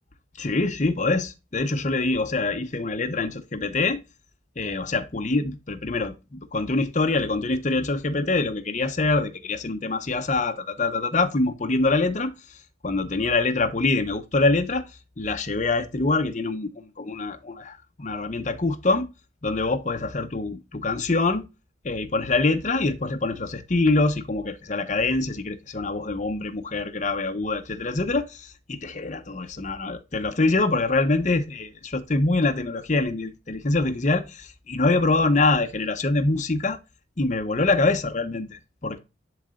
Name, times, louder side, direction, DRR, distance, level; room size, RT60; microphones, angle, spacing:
voice 1, 0.4-4.0 4.6-12.3 12.8-14.8 15.2-19.1 19.4-21.4 21.8-36.8 37.2-39.0, left 3 dB, 40° left, 0.8 m, -25 dB
10.5 x 3.9 x 2.4 m
head